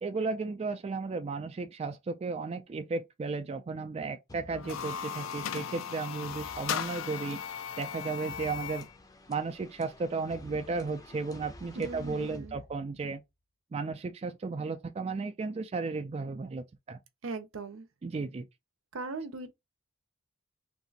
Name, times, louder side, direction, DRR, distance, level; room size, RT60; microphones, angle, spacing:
voice 1, 0.0-7.4 7.8-8.9 9.3-13.2 13.7-17.0 18.0-18.4, right 4 dB, 30° right, 0.3 m, -34 dB
sound 1, 4.3-13.2, left 1 dB, 20° left, 0.5 m, -52 dB
sound 2, 4.5-8.9, left 8 dB, 75° left, 0.4 m, -37 dB
voice 2, 11.7-12.6 17.2-17.9 18.9-19.5, right 3 dB, 80° right, 0.7 m, -39 dB
2.6 x 2.4 x 3.9 m
head